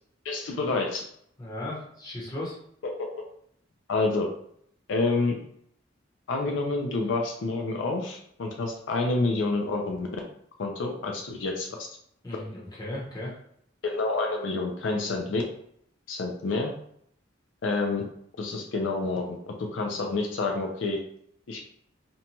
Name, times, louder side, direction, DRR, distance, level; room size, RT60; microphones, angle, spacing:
voice 1, 0.2-1.1 2.8-3.1 3.9-4.3 4.9-5.4 6.3-10.1 10.6-11.9 13.8-15.4 16.1-16.7 17.6-18.1 18.4-21.0 21.5-21.6, left 3 dB, 75° left, 1 dB, 0.4 m, -28 dB
voice 2, 1.4-2.6 12.2-13.4, left 1 dB, 20° left, -6 dB, 0.9 m, -36 dB
2.7 x 2.2 x 2.8 m, 0.68 s
head